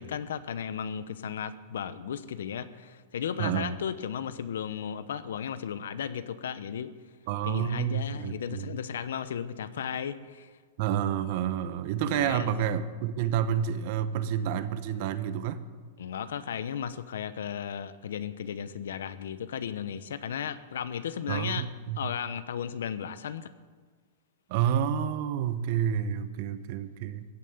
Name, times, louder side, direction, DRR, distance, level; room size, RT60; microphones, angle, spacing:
voice 1, 0.0-6.9 7.4-10.5 12.0-12.7 16.0-21.7 22.0-23.5, left 8 dB, 85° left, 14 dB, 0.9 m, -35 dB
voice 2, 3.4-3.8 7.3-8.7 10.8-15.6 21.3-22.0 24.5-27.3, right 9 dB, 55° right, 12 dB, 1.1 m, -29 dB
15.0 x 9.2 x 8.1 m, 1.5 s
hypercardioid pair, 140°, 0 cm